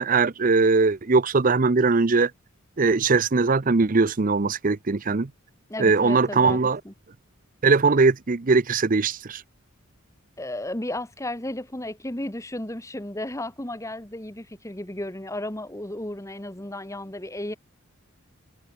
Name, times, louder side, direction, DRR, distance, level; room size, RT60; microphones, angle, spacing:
voice 1, 0.0-2.3 2.8-5.3 5.8-6.8 7.6-9.4, right 4 dB, 40° right, 0.6 m, -20 dB
voice 2, 5.7-6.6 6.9-7.0 10.4-17.5, left 1 dB, 15° left, 1.7 m, -34 dB
head